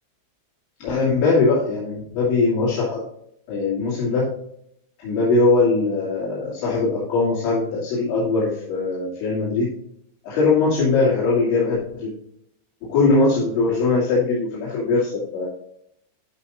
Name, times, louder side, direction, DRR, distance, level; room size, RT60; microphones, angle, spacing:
voice 1, 0.8-3.0 3.5-4.3 5.0-9.7 10.2-12.1 12.8-15.5, left 3 dB, 75° left, -8 dB, 4.5 m, -21 dB
12.5 x 5.4 x 2.5 m, 0.71 s
omnidirectional pair, 5.4 m